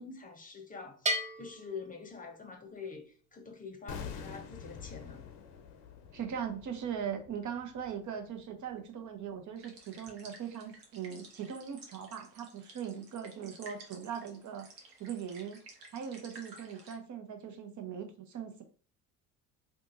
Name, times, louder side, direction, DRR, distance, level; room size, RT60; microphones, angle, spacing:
voice 1, 0.0-5.2, left 5 dB, 15° left, 1.0 m, -46 dB
Bell, 1.1-2.8, equal, 15° right, 0.5 m, -36 dB
sound 1, 3.9-8.9 9.1-9.3, left 7 dB, 60° left, 0.8 m, -47 dB
voice 2, 6.1-14.7 15.0-15.6 15.9-18.6, right 8 dB, 35° right, 0.9 m, -40 dB
sound 2, 9.6-17.0, right 3 dB, 85° right, 0.9 m, -54 dB
2.7 x 2.5 x 3.8 m
hypercardioid pair, 70°, 49 cm